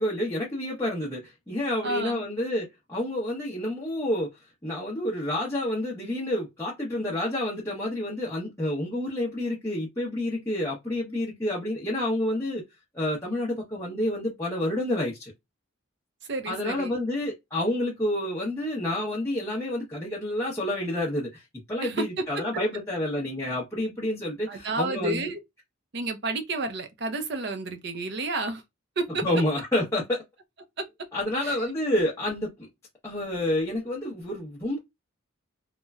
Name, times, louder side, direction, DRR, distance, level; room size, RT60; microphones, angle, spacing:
voice 1, 0.0-4.3 4.6-12.6 12.9-15.3 16.5-21.4 21.7-25.3 29.2-30.2 31.1-32.5 33.0-34.8, left 1 dB, 15° left, 0.7 m, -29 dB
voice 2, 1.8-2.2 16.3-17.0 21.8-22.1 24.5-25.4 25.9-28.6 29.0-29.2 30.8-30.9 31.4-31.6, right 2 dB, 50° right, 0.6 m, -30 dB
3.1 x 2.1 x 2.3 m
head